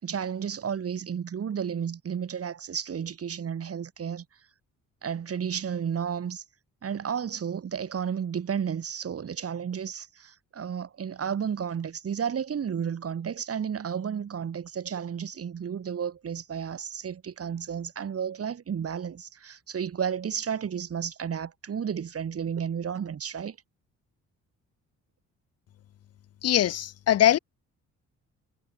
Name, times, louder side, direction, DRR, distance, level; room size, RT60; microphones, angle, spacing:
voice 1, 0.0-4.3 5.0-6.4 6.8-23.6, right 7 dB, 50° right, 5.4 m, -32 dB
voice 2, 26.4-27.4, left 12 dB, 55° left, 0.8 m, -22 dB
cardioid pair, 90°, 30 cm